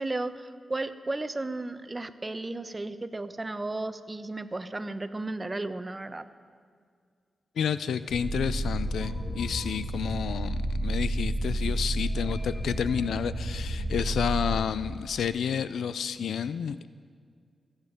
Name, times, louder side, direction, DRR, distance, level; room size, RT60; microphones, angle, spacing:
voice 1, 0.0-6.3, right 2 dB, 30° right, 11 dB, 0.9 m, -34 dB
voice 2, 7.6-16.9, left 7 dB, 85° left, 15 dB, 0.4 m, -30 dB
sound 1, 8.1-14.5, right 1 dB, 65° left, 4.8 m, -31 dB
25.5 x 8.9 x 5.2 m, 2.1 s
cardioid pair, 50°, 0 cm